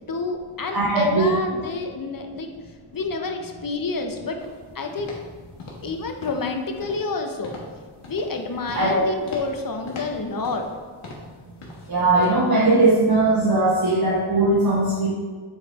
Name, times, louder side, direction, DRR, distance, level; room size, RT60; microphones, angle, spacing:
voice 1, 0.1-2.5 2.9-4.4 4.7-5.2 5.8-7.5 8.1-10.7, left 3 dB, 45° left, 4 dB, 0.7 m, -29 dB
voice 2, 0.7-1.3 8.7-9.0 11.9-15.1, right 2 dB, 45° right, -7 dB, 1.1 m, -19 dB
sound 1, 4.4-4.6 5.0-5.3 5.6-5.9 6.2-6.5 6.8-7.1 7.4-7.7 8.0-8.4 8.7-9.0 9.3-9.6 9.9-10.8 11.0-11.3 11.6-11.9 12.2-12.3, left 2 dB, 75° left, 1.4 m, -39 dB
7.4 x 3.4 x 4.1 m, 1.5 s
wide cardioid pair, 120°, 50 cm